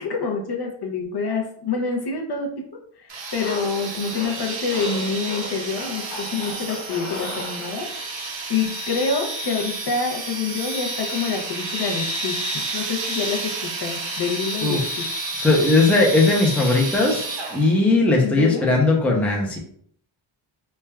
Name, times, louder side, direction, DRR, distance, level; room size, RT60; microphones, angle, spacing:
voice 1, 0.0-7.9 8.5-15.1 18.2-18.7, left 5 dB, 55° left, 1 dB, 0.6 m, -27 dB
sound 1, 3.1-17.9, right 2 dB, 60° right, 0.6 m, -30 dB
sound 2, 3.3-8.1, left 3 dB, 85° left, 0.7 m, -37 dB
voice 2, 14.6-15.0 15.4-19.6, left 2 dB, 5° left, -1 dB, 0.4 m, -19 dB
3.2 x 2.2 x 2.2 m, 0.62 s
wide cardioid pair, 110°, 50 cm